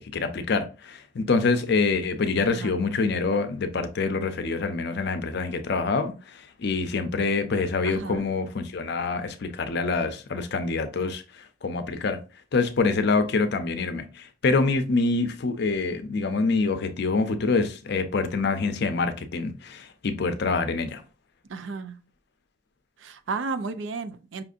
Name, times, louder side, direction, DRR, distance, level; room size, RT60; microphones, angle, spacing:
voice 1, 0.0-12.2 12.5-21.0, left 4 dB, 60° left, 0.6 m, -26 dB
voice 2, 7.8-8.3 21.5-22.0 23.0-24.4, right 4 dB, 70° right, 0.4 m, -33 dB
5.6 x 2.6 x 2.5 m
head